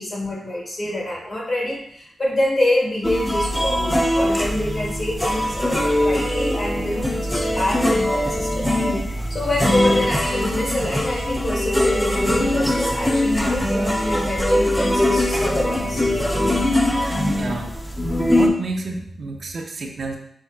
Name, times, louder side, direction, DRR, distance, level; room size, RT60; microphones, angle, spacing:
voice 1, 0.0-8.9 9.3-16.1, left 1 dB, 45° left, -3 dB, 1.6 m, -26 dB
sound 1, 3.0-18.5, left 1 dB, 10° left, 0.6 m, -21 dB
voice 2, 17.3-17.7 18.3-20.2, right 3 dB, 60° right, 2 dB, 0.6 m, -30 dB
5.4 x 3.5 x 2.3 m, 0.70 s
cardioid pair, 65°, 0 cm